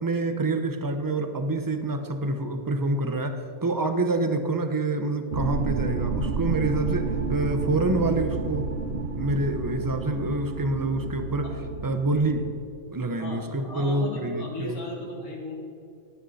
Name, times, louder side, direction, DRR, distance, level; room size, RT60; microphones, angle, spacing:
voice 1, 0.0-11.6 11.8-12.4 12.9-14.7, right 2 dB, 20° right, 7 dB, 0.7 m, -27 dB
sound 1, 5.3-12.5, right 4 dB, 50° right, 1.1 m, -30 dB
voice 2, 13.2-15.6, left 2 dB, 85° left, -3 dB, 3.4 m, -36 dB
18.5 x 9.6 x 4.2 m, 2.5 s
omnidirectional pair, 1.5 m